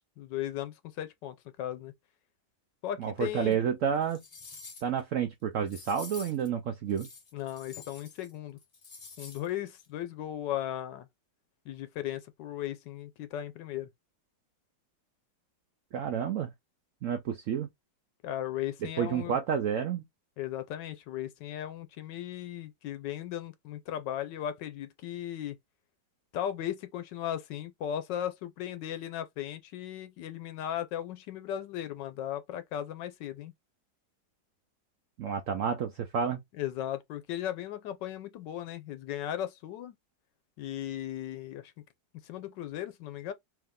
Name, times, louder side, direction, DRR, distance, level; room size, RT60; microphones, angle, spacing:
voice 1, 0.2-1.9 2.8-3.6 7.3-8.6 9.2-11.1 11.7-13.9 18.2-19.4 20.4-25.6 26.3-33.5 36.6-39.9 40.6-41.7 42.2-43.3, left 11 dB, 80° left, 1.2 m, -36 dB
voice 2, 3.0-4.2 4.8-7.1 15.9-16.5 17.0-17.7 18.8-20.0 35.2-36.4, right 7 dB, 80° right, 0.7 m, -30 dB
sound 1, 3.5-3.6 4.0-5.0 5.7-6.5 6.9-8.3 8.6-9.5 9.8-9.9, left 4 dB, 45° left, 0.4 m, -48 dB
3.6 x 2.8 x 3.6 m
omnidirectional pair, 1.9 m